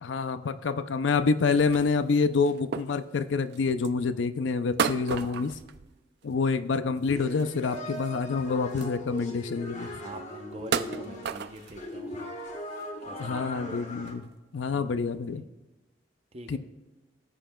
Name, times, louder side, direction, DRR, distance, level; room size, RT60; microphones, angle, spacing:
voice 1, 0.0-5.5 6.2-9.9 13.2-15.4 16.5-16.6, left 4 dB, 85° left, 13 dB, 0.5 m, -27 dB
sound 1, 1.4-4.0 4.8-6.4 6.8-8.1 8.4-8.5 8.7-9.4 9.9-10.0 10.5-11.9 12.4-12.5 12.8-13.3 13.7-13.8 14.1-14.3 15.1-15.2, right 7 dB, 60° right, 0.4 m, -34 dB
voice 2, 5.1-5.4 10.0-12.3 12.7-13.5 14.7-14.9 16.3-16.6, right 1 dB, 35° right, 6 dB, 0.8 m, -44 dB
sound 2, 7.1-14.1, left 1 dB, 40° left, 1.3 m, -39 dB
15.0 x 7.6 x 2.3 m, 1.1 s
head